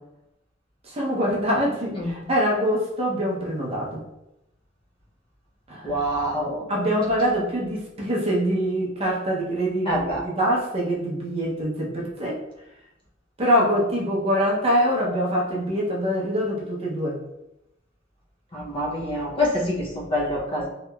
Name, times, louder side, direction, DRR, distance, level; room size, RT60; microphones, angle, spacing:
voice 1, 0.9-4.0 5.7-6.0 6.7-12.4 13.4-17.2, equal, 30° right, -3 dB, 0.6 m, -24 dB
voice 2, 5.8-6.7 9.9-10.2 18.5-20.7, equal, 25° left, -3 dB, 0.5 m, -26 dB
2.8 x 2.8 x 2.2 m, 0.89 s
head